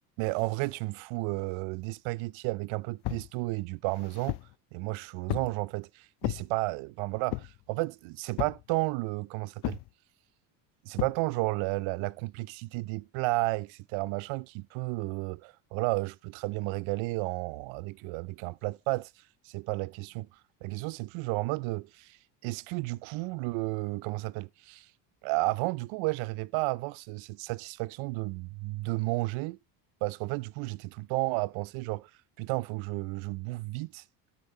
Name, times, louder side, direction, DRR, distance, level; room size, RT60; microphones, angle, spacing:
voice 1, 0.2-4.4 4.7-5.9 6.2-9.8 10.8-19.1 19.4-20.3 20.6-22.2 22.4-24.9 25.2-29.6 30.0-32.1 32.4-34.0, right 23 dB, 70° right, 0.7 m, -32 dB
sound 1, 3.0-3.3 3.9-4.5 5.3-5.6 6.2-6.5 7.3-7.6 8.4-8.7 9.6-9.9 11.0-11.2, left 21 dB, 55° left, 0.5 m, -34 dB
13.0 x 6.7 x 4.4 m
supercardioid pair, 85°, 49 cm